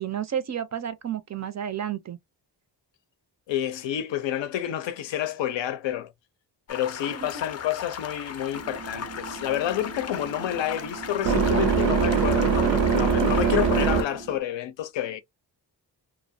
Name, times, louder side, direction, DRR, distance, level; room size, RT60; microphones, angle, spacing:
voice 1, 0.0-2.2 7.1-7.4, right 9 dB, 40° right, 0.5 m, -31 dB
voice 2, 3.5-6.1 6.7-15.2, left 11 dB, 85° left, 0.6 m, -29 dB
sound 1, 6.7-14.1, left 7 dB, 35° left, 0.4 m, -37 dB
sound 2, 8.5-14.4, right 6 dB, 85° right, 0.6 m, -24 dB
2.3 x 2.1 x 2.5 m
cardioid pair, 85°, 43 cm